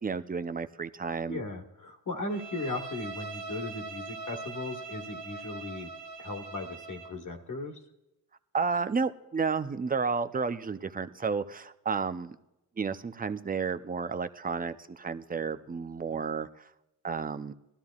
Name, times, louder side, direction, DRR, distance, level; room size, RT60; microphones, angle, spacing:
voice 1, 0.0-1.4 8.5-12.4 12.8-16.5 17.0-17.5, right 5 dB, 20° right, 10 dB, 0.6 m, -31 dB
voice 2, 1.3-5.9 6.2-7.8 16.1-16.2, left 2 dB, 50° left, 3 dB, 1.6 m, -37 dB
Bowed string instrument, 2.3-7.2, right 4 dB, 90° right, 1.2 m, -42 dB
19.5 x 13.0 x 2.4 m, 0.92 s
cardioid pair, 80°, 39 cm